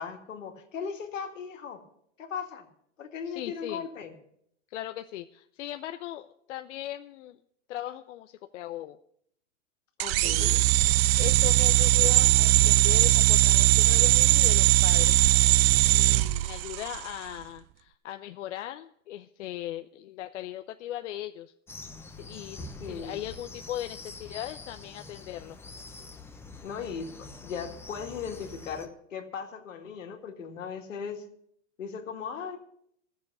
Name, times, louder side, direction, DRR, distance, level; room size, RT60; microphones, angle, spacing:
voice 1, 0.0-1.8 2.2-2.7 3.0-4.1 10.0-10.7 22.8-23.2 26.6-31.2 31.8-32.6, left 6 dB, 90° left, 3 dB, 2.3 m, -37 dB
voice 2, 3.3-3.8 4.7-7.4 7.7-9.0 10.2-15.2 15.9-21.5 22.1-25.6, left 13 dB, 70° left, 7 dB, 0.7 m, -39 dB
sound 1, 10.0-17.1, right 18 dB, 55° right, 0.4 m, -20 dB
sound 2, 21.7-28.9, left 3 dB, 5° left, 0.8 m, -45 dB
13.5 x 7.3 x 8.3 m, 0.70 s
hypercardioid pair, 130°, 37 cm